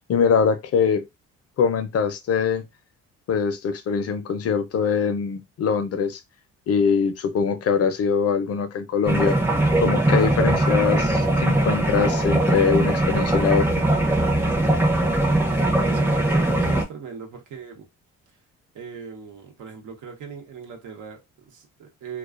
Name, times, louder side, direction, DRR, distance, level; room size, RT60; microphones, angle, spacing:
voice 1, 0.1-1.1 1.6-2.6 3.3-6.2 6.7-9.4 9.8-13.8, left 6 dB, 50° left, 0.5 m, -23 dB
sound 1, 9.1-16.8, right 1 dB, 5° right, 0.6 m, -21 dB
voice 2, 15.8-17.9 18.7-22.2, right 6 dB, 80° right, 0.9 m, -39 dB
2.3 x 2.3 x 2.4 m
cardioid pair, 90°, 30 cm